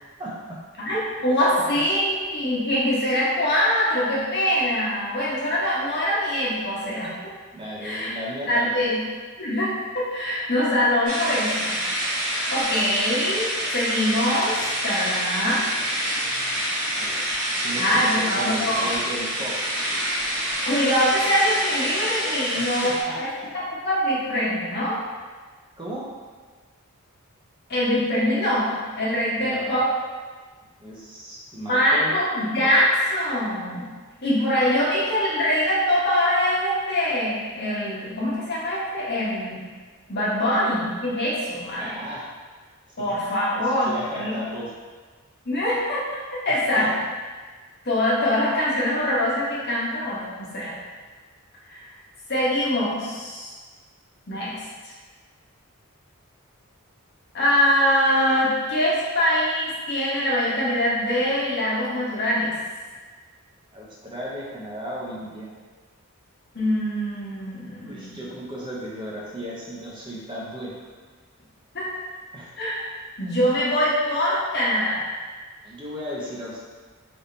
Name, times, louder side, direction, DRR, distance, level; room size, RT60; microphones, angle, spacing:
voice 1, 0.2-0.6 7.5-8.7 16.9-17.2 17.6-19.6 22.5-23.5 25.8-26.1 29.4-29.8 30.8-32.1 41.7-42.3 43.0-43.1 43.6-44.7 46.5-46.9 63.7-65.5 67.8-70.9 72.3-72.5 75.6-76.6, equal, 25° right, -5 dB, 0.6 m, -35 dB
voice 2, 0.8-7.1 7.8-8.1 8.5-9.0 9.4-11.8 12.2-15.6 17.8-18.9 20.6-23.3 23.7-25.0 27.7-29.9 31.7-33.9 34.2-39.6 40.1-41.9 43.0-44.4 45.4-46.0 46.4-46.9 47.8-50.7 51.7-51.9 52.3-53.5 54.3-54.5 57.3-62.5 66.5-68.2 71.7-71.9 72.6-72.8 73.2-75.0, equal, 50° left, -7 dB, 1.2 m, -23 dB
sound 1, 11.1-23.0, right 1 dB, 80° right, 1.1 m, -27 dB
3.5 x 2.8 x 3.9 m, 1.4 s
head